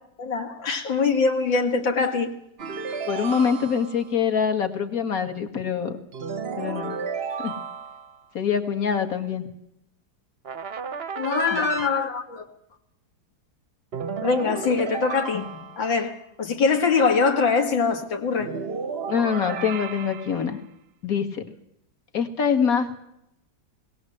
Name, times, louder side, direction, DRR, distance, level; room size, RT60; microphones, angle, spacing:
voice 1, 0.2-2.3 2.9-3.4 11.2-12.4 14.2-15.5 15.8-18.5, left 4 dB, 75° left, 3.0 m, -23 dB
Level Up, 2.6-4.1 6.1-8.2 10.4-11.9 13.9-16.0 18.4-20.5, right 6 dB, 45° right, 0.9 m, -33 dB
voice 2, 3.1-6.0 6.6-7.0 7.4-7.5 8.3-9.5 11.5-11.7 19.1-20.6 21.0-21.4 22.1-23.0, left 7 dB, 45° left, 2.3 m, -24 dB
21.0 x 18.0 x 7.9 m
omnidirectional pair, 2.1 m